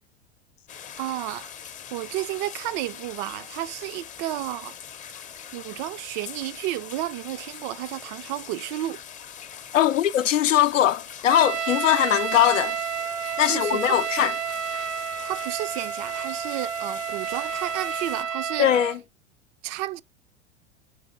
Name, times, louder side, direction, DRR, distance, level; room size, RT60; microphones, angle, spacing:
sound 1, 0.7-18.2, left 8 dB, 20° left, 0.6 m, -42 dB
voice 1, 1.0-4.8 5.5-9.0 13.4-14.0 15.2-18.8 19.6-20.0, right 15 dB, 40° right, 0.4 m, -32 dB
voice 2, 9.7-12.8 13.4-14.3 18.6-18.9, left 11 dB, 85° left, 0.5 m, -21 dB
Trumpet, 11.3-19.0, right 7 dB, 80° right, 0.8 m, -30 dB
6.6 x 3.7 x 4.9 m
figure-of-eight pair, 90°, 37 cm